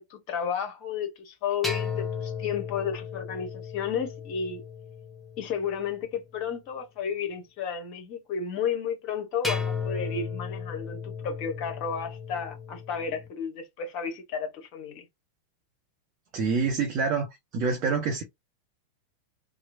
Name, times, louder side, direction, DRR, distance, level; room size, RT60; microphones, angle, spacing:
voice 1, 0.0-4.6 5.4-15.1, left 7 dB, 40° left, 0.9 m, -32 dB
sound 1, 1.6-6.0 9.4-13.3, left 5 dB, ahead, 0.6 m, -35 dB
voice 2, 16.3-17.3 17.5-18.2, right 5 dB, 40° right, 0.7 m, -26 dB
3.0 x 2.0 x 2.5 m
figure-of-eight pair, 90°, 0 cm